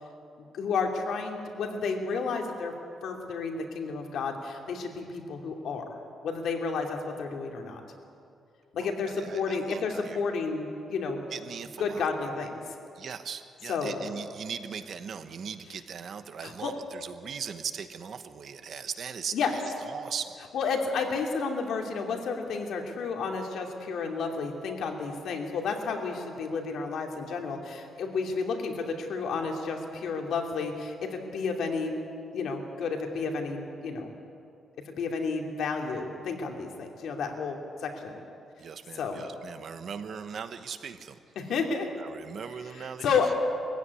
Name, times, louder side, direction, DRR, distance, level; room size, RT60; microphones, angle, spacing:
voice 1, 0.5-2.7 3.0-5.9 6.2-7.8 8.7-11.2 11.8-12.6 13.7-14.0 16.4-16.7 19.3-19.5 20.5-31.9 32.3-34.1 34.9-38.2 39.0-39.2 41.4-41.9 43.0-43.4, left 4 dB, 70° left, 2 dB, 2.8 m, -31 dB
voice 2, 8.8-10.3 11.3-12.3 12.9-20.4 38.6-41.2 42.0-43.3, right 7 dB, 45° right, 10 dB, 1.1 m, -39 dB
22.0 x 15.5 x 9.8 m, 2.6 s
wide cardioid pair, 170°, 0 cm